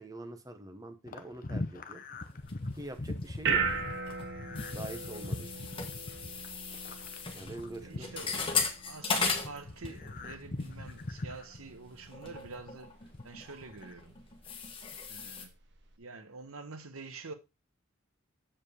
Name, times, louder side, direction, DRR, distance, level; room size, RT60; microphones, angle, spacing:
voice 1, 0.0-2.0 2.7-3.6 4.7-5.5 7.3-8.5, right 1 dB, 15° right, 1.1 m, -44 dB
sound 1, 1.1-8.8 9.1-12.7 13.0-13.9, left 2 dB, 40° left, 0.8 m, -41 dB
sound 2, 2.4-16.0, right 5 dB, 55° right, 1.0 m, -40 dB
sound 3, 2.5-3.4 3.7-10.3 10.6-10.9 11.4-11.5 12.1-15.5, left 5 dB, 25° left, 1.5 m, -37 dB
voice 2, 7.8-8.5 8.8-14.2 15.1-15.6 16.0-17.3, right 3 dB, 80° right, 1.2 m, -47 dB
7.5 x 5.0 x 4.9 m
head